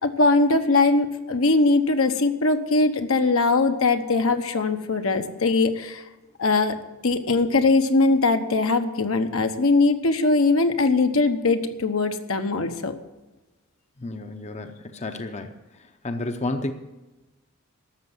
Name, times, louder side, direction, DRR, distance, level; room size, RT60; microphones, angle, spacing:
voice 1, 0.0-6.0 6.4-6.7 7.0-12.9, left 3 dB, 70° left, 7 dB, 1.0 m, -21 dB
voice 2, 14.0-15.5 16.0-16.7, left 2 dB, 30° left, 7 dB, 0.7 m, -31 dB
13.0 x 7.1 x 9.5 m, 1.1 s
head